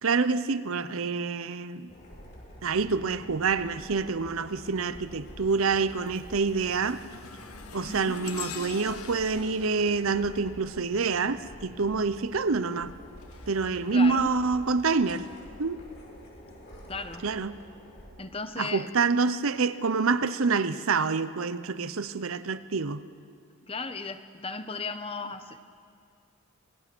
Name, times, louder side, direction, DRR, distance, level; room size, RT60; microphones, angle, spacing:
voice 1, 0.0-1.9 2.6-7.0 7.7-12.9 13.5-15.3 15.6-15.9 17.2-17.6 18.6-23.1, right 4 dB, 70° right, 0.8 m, -27 dB
sound 1, 1.9-18.1, equal, 45° left, 5.9 m, -48 dB
sound 2, 3.7-4.1 4.6-11.4 12.6-14.8 15.5-15.7 16.6-16.7, left 6 dB, 80° left, 1.3 m, -46 dB
voice 2, 7.9-8.2 13.9-14.3 16.9-17.3 18.2-18.9 23.7-25.6, left 4 dB, 25° left, 0.9 m, -36 dB
27.5 x 19.5 x 6.1 m
head